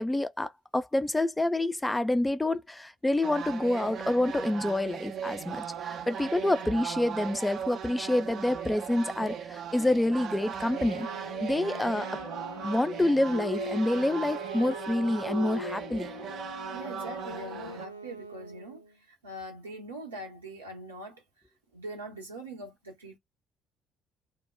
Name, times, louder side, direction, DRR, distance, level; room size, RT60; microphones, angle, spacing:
voice 1, 0.0-11.1 11.4-12.2 12.6-16.1, left 1 dB, 10° left, 0.3 m, -27 dB
sound 1, 3.2-17.9, right 8 dB, 50° right, 0.5 m, -38 dB
Wind instrument woodwind instrument, 10.6-18.9, left 3 dB, 85° left, 0.4 m, -42 dB
voice 2, 16.7-21.2 21.7-23.2, right 1 dB, 80° right, 0.9 m, -42 dB
2.1 x 2.1 x 3.2 m
figure-of-eight pair, 50°, 0 cm